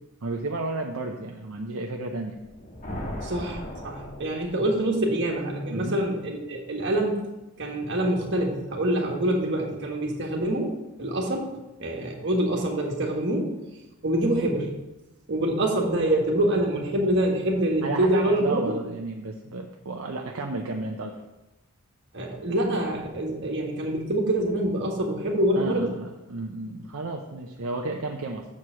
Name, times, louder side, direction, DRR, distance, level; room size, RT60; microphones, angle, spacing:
voice 1, 0.2-2.4 5.7-6.0 17.8-21.2 25.5-28.5, right 2 dB, 70° right, 1 dB, 0.7 m, -32 dB
sound 1, 2.4-5.0, left 1 dB, 40° left, 1.5 m, -37 dB
voice 2, 3.2-7.2 7.6-11.5 11.8-13.6 14.0-14.7 15.3-18.6 22.1-25.9, right 1 dB, 55° right, 0 dB, 1.5 m, -25 dB
7.3 x 4.8 x 6.2 m, 1.0 s
head